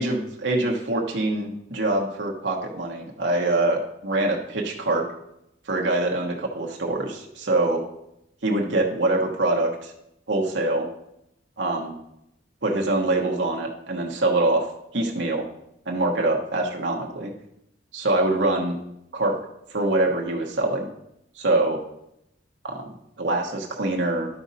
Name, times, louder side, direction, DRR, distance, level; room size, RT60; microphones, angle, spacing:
voice 1, 0.0-5.0 5.7-7.8 8.4-9.9 10.3-10.9 11.6-11.9 12.6-14.7 14.9-15.5 15.9-17.3 17.9-18.8 19.1-19.4 19.7-20.9 21.3-21.8 22.6-22.9 23.2-24.3, right 2 dB, 75° right, 0 dB, 1.2 m, -24 dB
11.5 x 4.1 x 5.1 m, 0.81 s
head